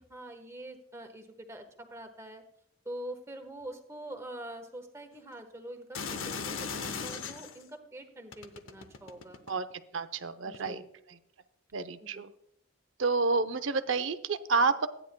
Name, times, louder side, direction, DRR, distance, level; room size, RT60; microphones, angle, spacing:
voice 1, 0.0-2.4 2.8-9.4 10.4-10.9 12.1-12.3, right 1 dB, 15° right, 4 dB, 1.2 m, -45 dB
sound 1, 5.9-7.6 8.3-9.7 10.5-10.7, left 5 dB, 80° left, 0.8 m, -37 dB
voice 2, 9.9-10.8 11.7-12.3 13.0-14.9, right 4 dB, 75° right, 11 dB, 0.7 m, -29 dB
14.5 x 9.9 x 2.2 m, 0.75 s
head